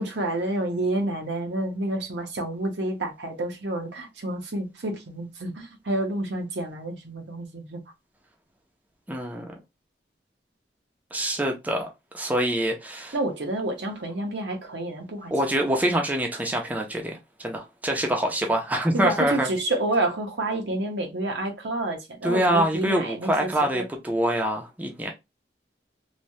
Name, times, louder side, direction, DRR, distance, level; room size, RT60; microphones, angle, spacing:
voice 1, 0.0-7.8 13.1-15.3 18.9-23.8, right 2 dB, 70° right, 0.8 m, -29 dB
voice 2, 9.1-9.5 11.1-11.9 12.1-13.2 15.3-19.5 22.2-25.1, right 1 dB, 10° right, 0.5 m, -25 dB
3.1 x 2.1 x 2.7 m
head